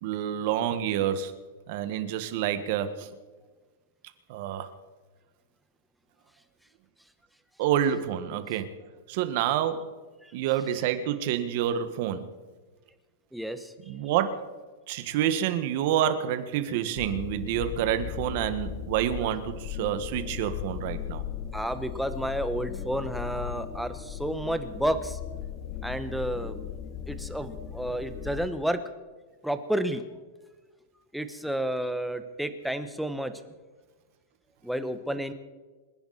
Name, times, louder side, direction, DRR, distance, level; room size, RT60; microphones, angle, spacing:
voice 1, 0.0-1.3 1.7-3.1 4.3-4.7 7.6-8.7 9.1-9.9 10.3-12.3 13.9-14.4 14.9-21.2, right 10 dB, 45° right, 9 dB, 1.7 m, -28 dB
voice 2, 13.3-13.7 21.5-25.2 25.8-26.7 27.1-28.8 29.4-30.0 31.1-33.3 34.6-35.3, right 1 dB, ahead, 9 dB, 1.0 m, -31 dB
sound 1, 17.0-28.5, left 9 dB, 30° left, 1.0 m, -37 dB
27.0 x 11.0 x 4.3 m, 1.3 s
supercardioid pair, 160°, 0 cm